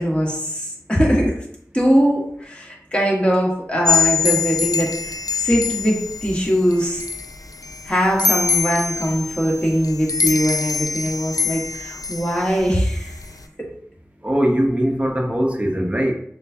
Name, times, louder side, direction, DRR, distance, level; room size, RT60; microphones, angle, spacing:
voice 1, 0.0-1.3 1.7-4.9 5.3-7.1 7.8-13.2 13.6-13.7, equal, 20° left, -3 dB, 1.4 m, -21 dB
sound 1, 3.8-13.4, left 5 dB, 75° left, 0.4 m, -24 dB
voice 2, 14.2-16.1, equal, 20° right, 1 dB, 0.8 m, -20 dB
6.5 x 2.4 x 2.7 m, 0.67 s
wide cardioid pair, 45°, 6 cm